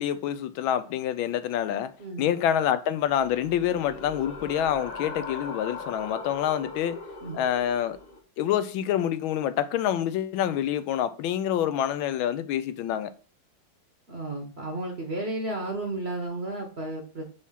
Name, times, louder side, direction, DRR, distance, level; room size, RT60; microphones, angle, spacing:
voice 1, 0.0-7.0 7.3-8.0 8.4-13.1, left 10 dB, 80° left, 1.4 m, -27 dB
voice 2, 2.0-2.3 7.2-7.4 14.1-17.2, right 2 dB, 40° right, 1.0 m, -33 dB
sound 1, 3.1-8.2, left 4 dB, 45° left, 1.5 m, -39 dB
4.8 x 4.1 x 5.6 m
omnidirectional pair, 2.2 m